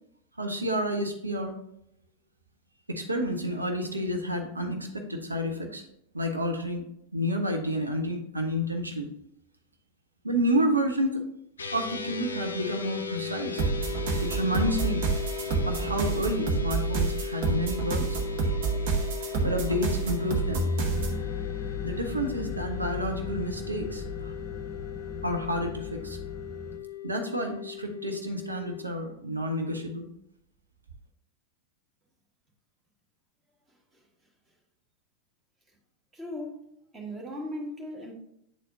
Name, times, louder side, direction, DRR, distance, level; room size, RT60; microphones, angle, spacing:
voice 1, 0.4-1.5 2.9-5.8 6.1-6.8 7.1-9.1 10.2-11.2 11.7-13.6 14.2-15.0 15.6-18.2 19.4-20.6 21.8-24.3 25.2-26.2 27.0-30.1, equal, 80° right, 3 dB, 0.8 m, -30 dB
sound 1, 11.6-28.8, left 8 dB, 70° left, 0.4 m, -37 dB
sound 2, 13.6-21.2, right 4 dB, 50° right, 1.0 m, -28 dB
sound 3, 20.8-26.8, left 5 dB, 30° left, 0.8 m, -37 dB
voice 2, 36.1-36.6 36.9-38.1, left 1 dB, 15° right, 0 dB, 1.5 m, -37 dB
8.9 x 4.2 x 2.6 m, 0.75 s
figure-of-eight pair, 90°, 0 cm